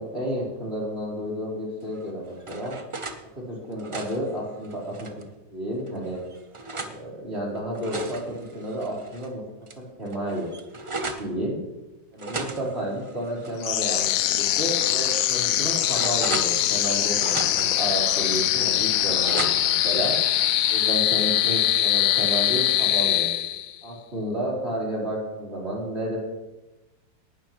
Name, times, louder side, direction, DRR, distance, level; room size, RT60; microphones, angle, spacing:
voice 1, 0.0-2.7 3.4-5.1 5.5-6.2 6.8-9.4 9.8-10.5 11.1-11.6 12.1-20.2 20.7-23.3 23.8-26.2, equal, 35° right, -5 dB, 4.2 m, -31 dB
sound 1, 1.9-3.2 3.6-5.3 5.9-7.0 7.6-9.3 9.7-9.8 10.1-11.3 12.2-14.0 14.4-14.5 15.1-16.9 17.2-17.9 18.4-19.9, right 3 dB, 50° right, 0.3 m, -36 dB
sound 2, 13.6-23.8, left 12 dB, 75° left, 0.7 m, -23 dB
18.0 x 11.5 x 3.1 m, 1.1 s
omnidirectional pair, 2.0 m